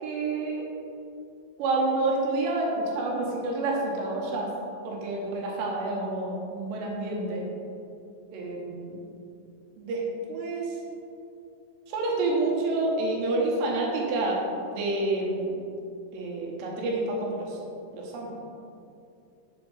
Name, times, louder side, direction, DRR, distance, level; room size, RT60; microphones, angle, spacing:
voice 1, 0.0-0.6 1.6-4.5 4.8-7.5 8.3-9.0 9.8-10.8 11.9-14.4 14.7-15.6 16.1-17.6 17.9-18.6, right 2 dB, 85° right, -2 dB, 3.0 m, -28 dB
7.0 x 3.9 x 3.8 m, 2.6 s
omnidirectional pair, 4.9 m